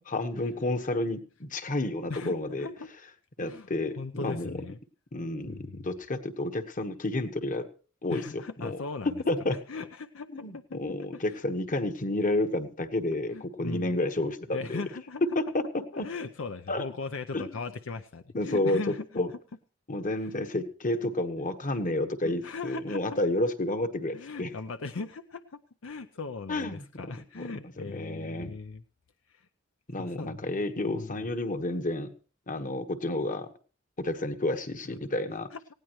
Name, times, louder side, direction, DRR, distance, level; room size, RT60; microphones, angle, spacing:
voice 1, 0.1-2.7 3.4-4.6 5.1-7.7 8.0-8.2 8.6-8.8 9.0-9.6 10.3-14.8 15.3-16.1 16.7-16.8 17.3-17.5 18.3-19.3 19.9-24.5 26.5-26.8 27.3-27.5 27.8-28.5 29.9-32.1 32.5-33.5 34.0-35.5, left 2 dB, 40° left, 9 dB, 1.3 m, -30 dB
voice 2, 2.1-2.9 3.4-3.7 4.0-4.8 5.5-5.9 8.1-9.2 9.7-10.8 11.1-11.4 13.3-14.0 14.5-15.2 15.9-19.2 20.2-20.3 22.2-23.2 24.1-28.8 29.3-29.5 30.0-30.4 30.9-31.3 35.5-35.6, left 4 dB, 70° left, 10 dB, 0.6 m, -39 dB
19.0 x 16.5 x 3.1 m, 0.38 s
head